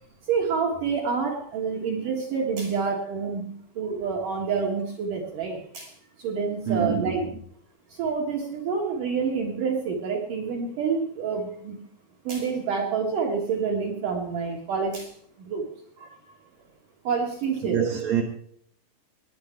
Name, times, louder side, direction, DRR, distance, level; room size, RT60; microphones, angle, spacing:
voice 1, 0.3-5.9 6.2-7.2 7.9-11.8 12.2-15.7 17.0-17.8, right 5 dB, 60° right, 2.5 m, -28 dB
voice 2, 6.7-7.3 16.0-16.2 17.6-18.2, right 8 dB, 80° right, 1.5 m, -26 dB
20.0 x 9.8 x 4.6 m
omnidirectional pair, 5.7 m